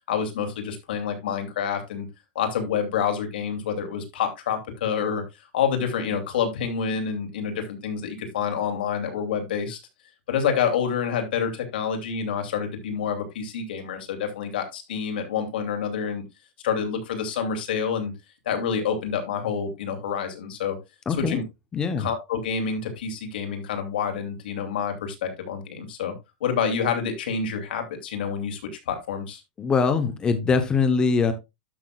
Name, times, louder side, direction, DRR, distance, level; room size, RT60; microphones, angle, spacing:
voice 1, 0.1-2.1 2.3-9.8 10.3-16.2 16.6-18.1 18.4-20.8 21.2-21.4 22.0-26.1 26.4-29.4, left 7 dB, 85° left, 4 dB, 2.8 m, -28 dB
voice 2, 21.1-21.4 21.7-22.1 29.6-31.3, left 5 dB, 15° left, 9 dB, 0.9 m, -22 dB
12.0 x 6.1 x 2.4 m, 0.22 s
supercardioid pair, 160°, 5 cm